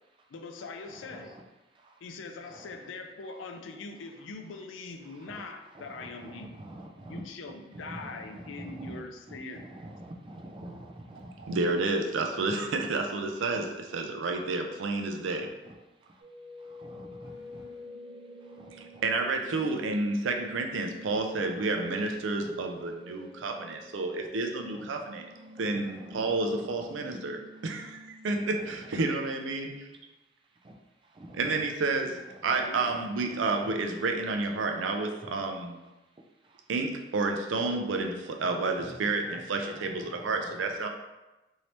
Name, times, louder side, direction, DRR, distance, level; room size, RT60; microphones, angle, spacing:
voice 1, 0.3-1.4 2.0-6.6 7.1-9.8 32.6-33.0, left 3 dB, 90° left, 5 dB, 0.4 m, -42 dB
voice 2, 6.3-7.2 7.8-9.0 9.3-9.4 9.7-11.6 15.7-15.8 16.8-17.6 18.6-19.0 22.4-22.5 25.6-26.7 30.6-30.7 31.2-31.4 35.2-35.3 38.8-38.9 40.0-40.3, right 1 dB, 25° right, 2 dB, 0.3 m, -45 dB
voice 3, 11.4-15.5 18.7-25.2 25.6-29.9 31.3-35.8 36.7-40.9, right 3 dB, 90° right, 3 dB, 0.4 m, -30 dB
sound 1, 16.2-28.2, equal, 65° right, 1.0 m, -47 dB
3.1 x 2.7 x 2.9 m, 1.0 s
head